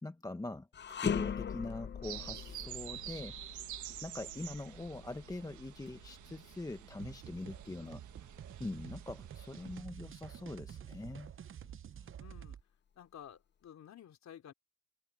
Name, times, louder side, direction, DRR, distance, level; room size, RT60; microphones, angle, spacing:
voice 1, 0.0-3.6 4.0-8.0 8.6-11.3, left 2 dB, 10° left, 1.0 m, -43 dB
sound 1, 0.7-10.0 10.4-10.6 11.4-12.3, left 7 dB, 35° left, 0.8 m, -42 dB
sound 2, 2.0-9.8, right 12 dB, 75° right, 1.5 m, -48 dB
sound 3, 7.0-12.6, right 9 dB, 45° right, 0.8 m, -49 dB
voice 2, 12.2-12.6 12.9-14.5, left 10 dB, 65° left, 3.5 m, -53 dB
open air
cardioid pair, 90°, 30 cm